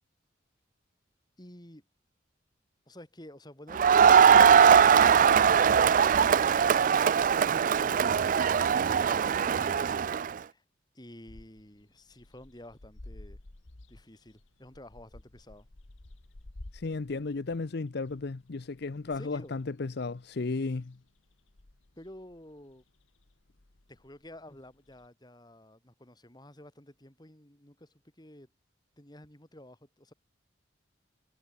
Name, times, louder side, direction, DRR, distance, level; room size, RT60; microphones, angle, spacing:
voice 1, 1.4-1.8 2.9-8.4 8.7-9.9 10.4-10.6 10.9-13.4 13.9-15.7 19.1-19.6 22.0-22.9 23.9-28.5 29.0-30.1, left 1 dB, 20° left, 3.4 m, -51 dB
Crowd, 3.7-10.3, right 7 dB, 45° right, 0.3 m, -21 dB
sound 1, 11.3-25.1, left 1 dB, 80° left, 1.5 m, -53 dB
voice 2, 16.7-21.0, left 3 dB, 60° left, 0.6 m, -34 dB
head